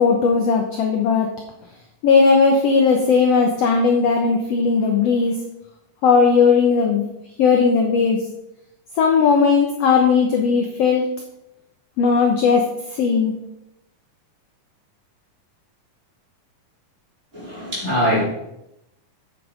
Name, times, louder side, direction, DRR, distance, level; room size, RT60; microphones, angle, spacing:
voice 1, 0.0-1.3 2.0-5.4 6.0-7.1 7.4-8.2 8.9-11.1 12.0-13.3, left 5 dB, 65° left, 2 dB, 1.7 m, -17 dB
voice 2, 17.3-18.2, equal, 20° right, -7 dB, 4.7 m, -22 dB
8.4 x 8.1 x 5.1 m, 0.85 s
omnidirectional pair, 3.9 m